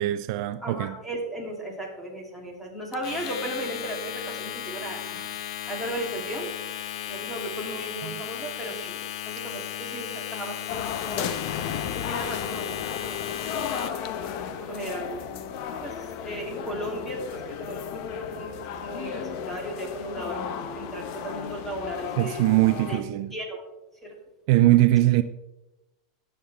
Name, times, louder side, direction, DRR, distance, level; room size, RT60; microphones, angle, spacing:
voice 1, 0.0-1.0 8.0-8.2 22.2-23.4 24.5-25.2, right 16 dB, 55° right, 0.4 m, -21 dB
voice 2, 0.6-5.3 5.7-6.5 7.1-11.3 11.8-12.7 13.0-14.3 14.6-15.2 15.8-15.9 16.2-18.5 18.8-22.4 22.9-23.0 23.3-23.6 24.0-24.1, right 1 dB, 5° left, 2.8 m, -36 dB
Domestic sounds home sounds, 2.9-14.1, left 11 dB, 80° left, 0.6 m, -35 dB
sound 1, 10.7-23.0, left 8 dB, 50° left, 0.9 m, -34 dB
18.5 x 7.2 x 3.5 m
supercardioid pair, 155°, 3 cm